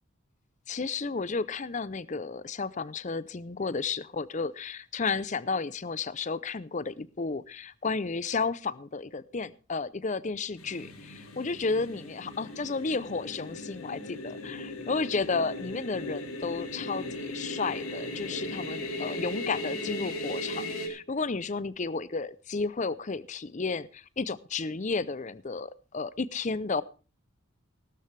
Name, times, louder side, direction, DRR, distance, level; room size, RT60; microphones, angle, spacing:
voice 1, 0.7-26.8, left 4 dB, 35° left, 19 dB, 0.6 m, -32 dB
sound 1, 10.6-20.9, left 1 dB, 90° left, 3.0 m, -37 dB
16.5 x 12.5 x 3.3 m, 0.35 s
head